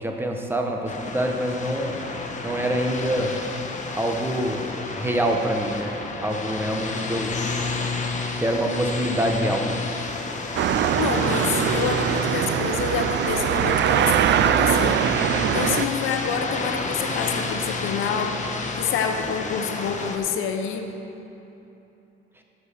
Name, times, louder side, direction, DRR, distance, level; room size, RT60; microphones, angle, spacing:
voice 1, 0.0-2.0 2.4-3.3 4.0-4.7 4.9-7.3 8.4-9.8, right 1 dB, 10° right, 2 dB, 1.2 m, -25 dB
sound 1, 0.9-20.2, left 3 dB, 40° left, 1.1 m, -31 dB
sound 2, 10.6-15.9, right 9 dB, 65° right, 0.5 m, -22 dB
voice 2, 11.0-15.0 15.5-20.9, left 6 dB, 85° left, 5 dB, 0.9 m, -27 dB
8.3 x 7.5 x 6.5 m, 3.0 s
cardioid pair, 90°, 20 cm